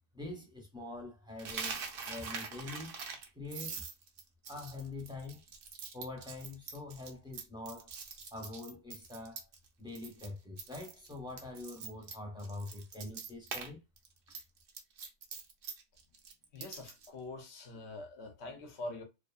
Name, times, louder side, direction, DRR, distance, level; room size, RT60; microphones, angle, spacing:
voice 1, 0.1-3.0 3.3-3.8 4.5-5.4 5.9-7.9 8.3-9.5 9.8-13.8, left 2 dB, 5° right, 0.6 m, -44 dB
Coin (dropping), 1.4-9.7 9.9-10.3 10.6-13.7 14.0-17.1, right 5 dB, 60° right, 0.7 m, -44 dB
voice 2, 16.5-19.0, left 2 dB, 70° left, 0.9 m, -44 dB
2.6 x 2.5 x 2.3 m
omnidirectional pair, 1.2 m